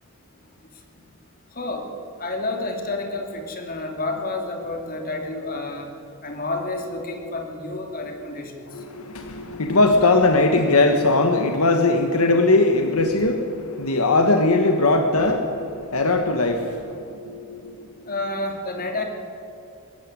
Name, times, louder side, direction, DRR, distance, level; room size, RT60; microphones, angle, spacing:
voice 1, 1.5-1.9 2.2-5.9 6.2-8.7 18.1-19.0, left 2 dB, 40° left, 3 dB, 2.9 m, -29 dB
voice 2, 8.7-18.0, left 2 dB, 75° left, 5 dB, 1.4 m, -20 dB
22.0 x 13.5 x 9.9 m, 2.8 s
head